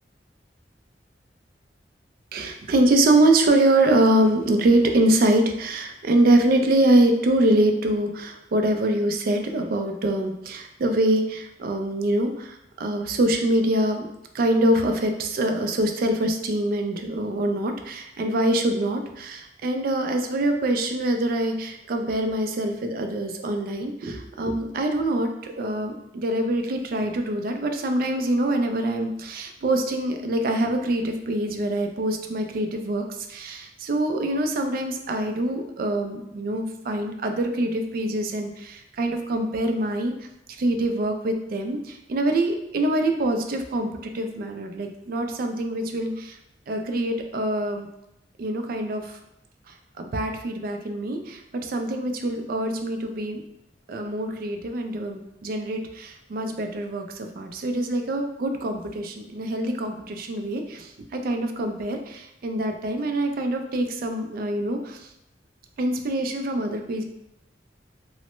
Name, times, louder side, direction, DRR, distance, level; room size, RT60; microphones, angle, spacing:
voice 1, 2.3-14.1 14.3-33.0 33.3-40.1 40.6-46.4 46.7-47.9 48.4-49.2 49.7-53.4 53.9-65.1 65.8-67.0, right 1 dB, 55° right, 5 dB, 0.4 m, -24 dB
3.0 x 2.0 x 3.0 m, 0.84 s
head